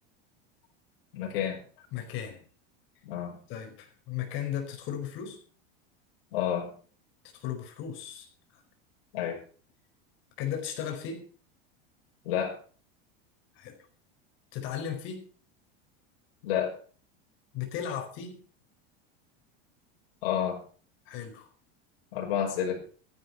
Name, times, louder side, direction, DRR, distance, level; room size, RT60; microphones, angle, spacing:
voice 1, 1.1-1.6 3.0-3.4 6.3-6.7 9.1-9.4 12.2-12.6 16.4-16.7 20.2-20.6 22.1-22.8, left 9 dB, 75° left, -1 dB, 5.9 m, -29 dB
voice 2, 1.9-2.4 3.5-5.4 7.3-8.3 10.4-11.3 13.6-13.8 14.5-15.3 17.5-18.4 21.1-21.5, left 9 dB, 40° left, 4 dB, 4.7 m, -36 dB
14.0 x 11.0 x 5.8 m, 0.42 s
supercardioid pair, 160°, 30 cm